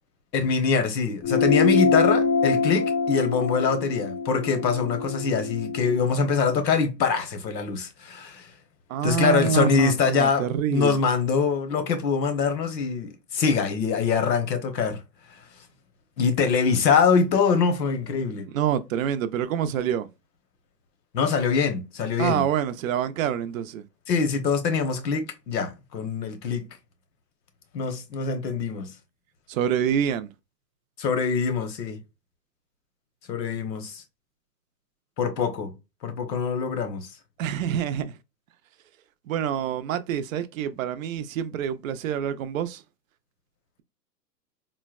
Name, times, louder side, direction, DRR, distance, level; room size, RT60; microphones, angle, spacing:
voice 1, 0.3-8.5 9.0-15.0 16.2-18.5 21.1-22.4 24.1-26.6 27.7-28.9 31.0-32.0 33.3-34.0 35.2-35.7 36.0-37.1, left 5 dB, 80° left, 1.0 m, -24 dB
sound 1, 1.2-6.0, left 4 dB, 15° left, 0.4 m, -24 dB
voice 2, 8.9-11.0 18.5-20.1 22.2-23.9 29.5-30.3 37.4-38.1 39.3-42.8, right 9 dB, 55° right, 0.5 m, -26 dB
3.8 x 2.1 x 2.3 m
hypercardioid pair, 130°, 50 cm